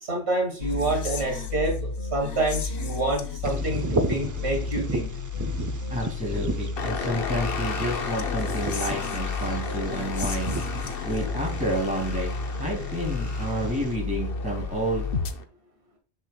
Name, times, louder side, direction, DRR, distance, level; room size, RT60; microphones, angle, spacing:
voice 1, 0.0-5.1, right 2 dB, 75° right, 1 dB, 2.3 m, -28 dB
sound 1, 0.6-15.3, left 4 dB, 80° left, 1.1 m, -32 dB
Bird vocalization bird call bird song, 3.4-13.9, right 2 dB, 25° right, 0.4 m, -35 dB
voice 2, 5.9-10.6 11.0-12.3 12.6-15.1, right 1 dB, 5° right, -2 dB, 2.8 m, -30 dB
sound 2, 6.8-15.4, left 5 dB, 65° left, 1.1 m, -35 dB
7.3 x 6.6 x 2.2 m, 0.36 s
omnidirectional pair, 1.1 m